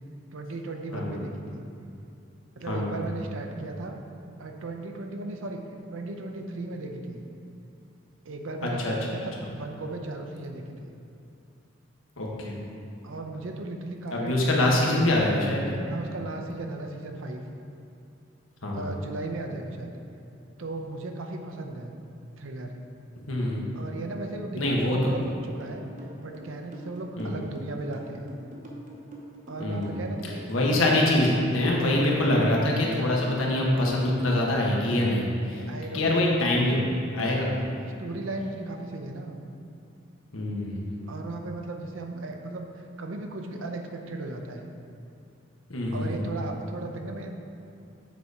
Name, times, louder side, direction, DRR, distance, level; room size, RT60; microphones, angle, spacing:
voice 1, 0.3-1.6 2.6-4.0 4.4-5.6 5.9-7.2 8.2-10.9 13.0-14.9 15.9-17.4 18.7-19.9 20.6-21.9 22.4-22.7 23.7-25.8 26.2-28.3 29.5-31.1 31.4-31.7 35.4-36.2 37.6-39.4 41.1-44.6 45.9-47.3, right 2 dB, 75° right, 3 dB, 0.7 m, -36 dB
voice 2, 2.6-3.0 8.6-8.9 12.2-12.6 14.1-15.7 18.6-19.0 23.3-23.6 24.6-25.0 27.2-27.3 29.6-30.0 30.5-35.6 35.9-36.8 37.1-37.5 40.3-41.0 45.7-46.2, left 1 dB, 80° left, -2 dB, 1.2 m, -24 dB
sound 1, 25.2-30.5, right 1 dB, 35° right, 0.8 m, -45 dB
7.4 x 4.1 x 4.8 m, 2.7 s
head